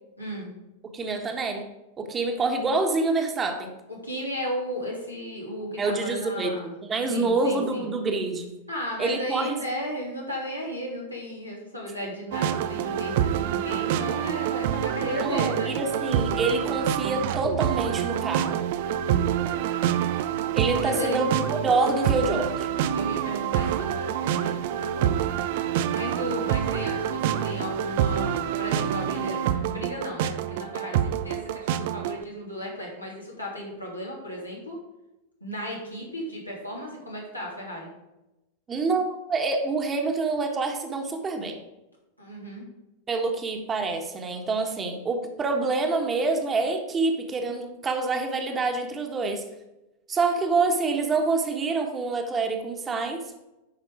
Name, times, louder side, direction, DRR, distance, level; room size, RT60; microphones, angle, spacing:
voice 1, 0.2-0.5 4.0-6.7 7.1-7.8 8.7-15.7 19.5-19.6 20.8-21.2 22.9-25.2 25.9-34.8 35.4-37.9 42.2-42.6, equal, 90° left, -4 dB, 3.1 m, -35 dB
voice 2, 0.9-1.7 2.0-3.7 5.8-6.5 6.9-8.5 9.0-9.6 15.0-18.6 20.5-22.7 38.7-41.6 43.1-49.4 50.1-53.2, right 3 dB, 20° right, 4 dB, 1.5 m, -26 dB
sound 1, 12.3-32.2, right 9 dB, 50° right, 0.5 m, -27 dB
9.8 x 5.7 x 5.0 m, 0.96 s
figure-of-eight pair, 90°, 0 cm